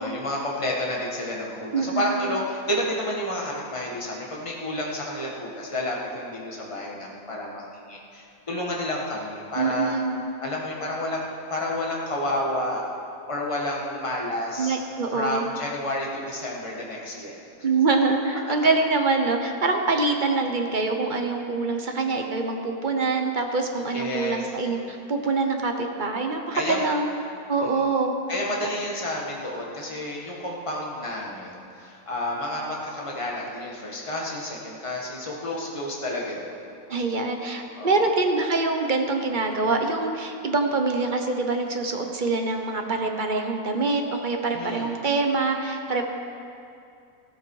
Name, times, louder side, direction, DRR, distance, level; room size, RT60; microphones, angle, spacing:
voice 1, 0.0-9.9 10.4-11.2 11.5-12.8 13.3-14.8 15.1-17.4 23.9-24.4 26.5-26.9 27.6-27.9 28.3-36.6 37.7-38.0 44.5-44.9, left 1 dB, 20° left, -3 dB, 1.8 m, -30 dB
voice 2, 1.7-2.3 9.6-10.2 14.6-15.4 17.6-27.1 27.5-28.1 36.9-46.0, right 3 dB, 35° right, 4 dB, 1.1 m, -25 dB
15.0 x 13.0 x 4.8 m, 2.5 s
omnidirectional pair, 1.6 m